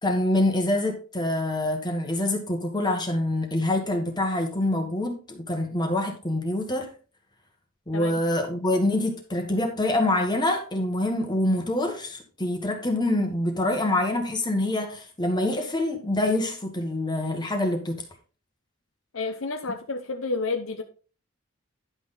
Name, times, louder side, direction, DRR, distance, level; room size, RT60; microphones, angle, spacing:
voice 1, 0.0-6.9 7.9-18.0, left 1 dB, 20° left, 1.5 m, -25 dB
voice 2, 19.1-20.8, left 3 dB, 70° left, 0.9 m, -30 dB
10.5 x 6.3 x 3.8 m
head